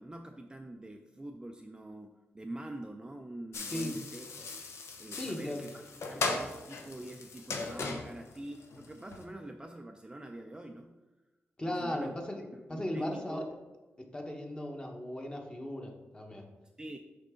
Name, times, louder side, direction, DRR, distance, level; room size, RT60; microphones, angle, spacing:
voice 1, 0.0-4.3 5.0-5.8 6.1-11.0 11.6-12.1 12.5-13.5 16.8-17.0, right 1 dB, 15° right, 4 dB, 0.4 m, -45 dB
sound 1, 3.5-9.3, left 3 dB, 80° left, 0.8 m, -38 dB
voice 2, 5.1-5.6 11.6-12.4 12.7-13.4 14.0-16.5, left 1 dB, 20° left, 2 dB, 1.1 m, -37 dB
6.2 x 5.3 x 3.7 m, 1.1 s
cardioid pair, 90°, 5 cm